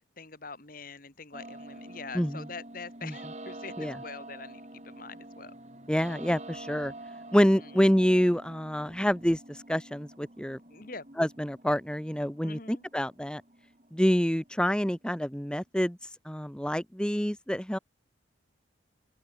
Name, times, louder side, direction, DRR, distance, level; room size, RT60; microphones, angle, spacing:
voice 1, 0.0-5.5 7.3-7.9 10.7-11.0 12.4-12.8, left 4 dB, 45° left, 2.8 m, -44 dB
sound 1, 1.3-15.2, right 1 dB, 35° right, 4.5 m, -47 dB
voice 2, 5.9-6.9 7.3-10.6 11.2-13.4 13.9-16.0 16.2-17.8, equal, 5° left, 1.1 m, -27 dB
open air
head